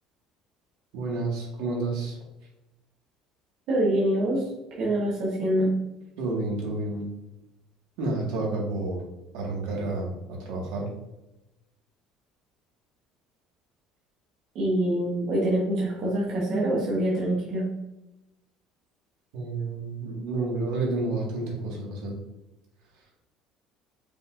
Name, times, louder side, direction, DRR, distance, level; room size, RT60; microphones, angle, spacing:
voice 1, 0.9-2.2 6.2-7.1 8.0-9.0 9.3-10.9 19.3-22.1, right 2 dB, 70° right, -2 dB, 1.5 m, -30 dB
voice 2, 3.7-4.4 4.8-5.8 14.5-17.7, right 1 dB, 50° right, -5 dB, 1.0 m, -25 dB
5.2 x 4.0 x 2.4 m, 0.95 s
cardioid pair, 175°, 0 cm